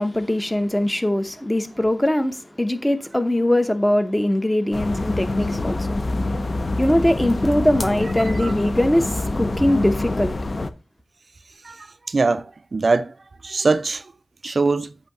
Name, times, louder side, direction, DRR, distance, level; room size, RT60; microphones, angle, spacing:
voice 1, 0.0-6.0 6.8-10.4, left 1 dB, 10° left, 0.8 m, -21 dB
sound 1, 4.7-10.7, left 2 dB, 45° left, 0.6 m, -25 dB
voice 2, 11.7-12.5 12.7-13.1 13.4-14.0 14.4-14.9, right 3 dB, 50° right, 0.3 m, -21 dB
8.0 x 2.7 x 5.9 m
wide cardioid pair, 85°, 0 cm